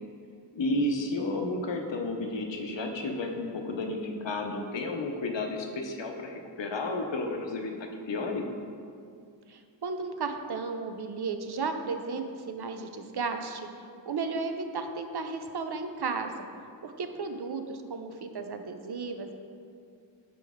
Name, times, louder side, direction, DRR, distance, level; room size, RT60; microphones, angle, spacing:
voice 1, 0.5-8.4, left 2 dB, 75° left, 3 dB, 0.6 m, -32 dB
voice 2, 9.5-13.7 14.1-16.5 16.8-19.3, right 4 dB, 60° right, 6 dB, 0.5 m, -34 dB
6.1 x 4.5 x 3.5 m, 2.3 s
wide cardioid pair, 45°, 44 cm